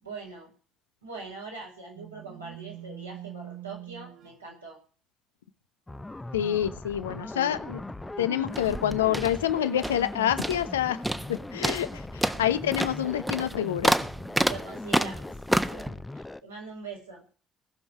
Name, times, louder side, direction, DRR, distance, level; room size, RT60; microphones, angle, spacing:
voice 1, 0.0-0.5 1.0-4.8 14.4-17.2, right 4 dB, 85° right, -3 dB, 5.6 m, -42 dB
sound 1, 2.0-4.4 6.8-14.7, right 13 dB, 55° right, 1.1 m, -49 dB
sound 2, 5.9-16.4, left 2 dB, 15° left, 0.8 m, -39 dB
voice 2, 6.3-7.8 8.2-11.0 11.3-13.9, left 11 dB, 75° left, 13 dB, 0.8 m, -27 dB
sound 3, 8.5-10.1 10.4-10.8 11.0-11.3 11.6-15.9, right 1 dB, 10° right, 1.2 m, -28 dB
19.0 x 7.2 x 9.6 m, 0.42 s
figure-of-eight pair, 45°, 0 cm